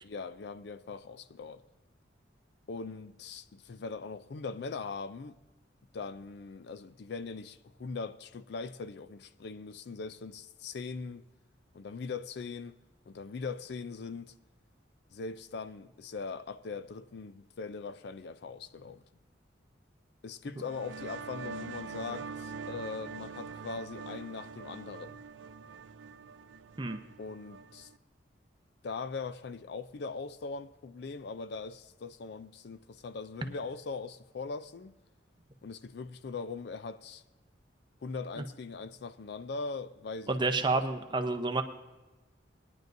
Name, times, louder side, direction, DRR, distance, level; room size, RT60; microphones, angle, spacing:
voice 1, 0.0-1.6 2.7-5.4 5.9-11.2 11.7-12.8 13.1-14.3 15.1-19.1 20.2-25.2 27.2-27.9 28.8-35.0 35.6-37.2 38.0-40.3 40.7-40.8, left 4 dB, 60° left, 0.4 m, -40 dB
sound 1, 20.6-28.0, right 5 dB, 85° right, 0.5 m, -44 dB
voice 2, 40.3-41.6, right 3 dB, 25° right, 0.7 m, -29 dB
20.0 x 10.5 x 2.6 m
head